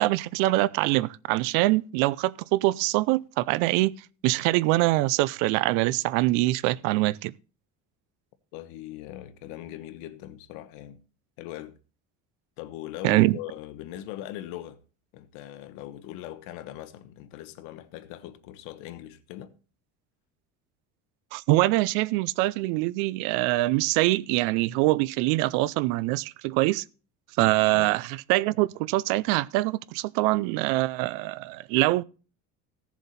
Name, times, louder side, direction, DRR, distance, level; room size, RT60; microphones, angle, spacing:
voice 1, 0.0-3.9 4.2-7.3 13.0-13.4 21.3-26.8 27.4-32.0, right 19 dB, 85° right, 0.5 m, -24 dB
voice 2, 8.5-11.0 11.4-11.8 12.6-14.8 15.1-19.5 27.7-27.9, left 13 dB, 80° left, 1.2 m, -40 dB
16.0 x 7.2 x 4.1 m
cardioid pair, 170°, 31 cm